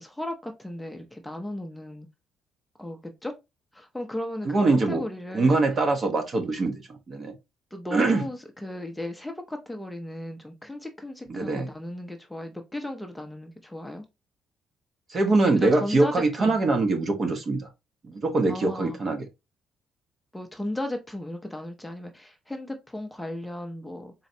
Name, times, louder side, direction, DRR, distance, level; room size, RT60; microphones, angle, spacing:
voice 1, 0.0-2.1 2.8-3.3 3.7-5.6 7.7-14.0 15.4-16.6 18.5-19.0 20.3-24.1, left 1 dB, 5° left, 0.6 m, -35 dB
voice 2, 4.4-5.0 5.3-6.8 7.1-7.3 7.9-8.2 11.3-11.7 15.1-17.6 18.0-19.2, right 3 dB, 40° right, 0.9 m, -23 dB
4.0 x 3.1 x 2.6 m
cardioid pair, 120°, 0 cm